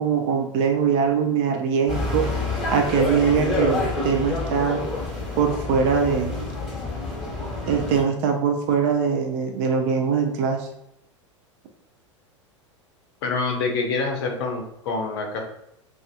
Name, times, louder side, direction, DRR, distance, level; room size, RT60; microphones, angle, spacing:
voice 1, 0.0-2.3 2.7-4.8 5.4-6.4 7.7-10.7, right 6 dB, 40° right, 3 dB, 0.4 m, -22 dB
sound 1, 1.9-8.0, left 2 dB, ahead, 1.1 m, -28 dB
voice 2, 13.2-15.4, left 4 dB, 50° left, 2 dB, 0.5 m, -26 dB
2.4 x 2.3 x 2.3 m, 0.78 s
figure-of-eight pair, 85°, 16 cm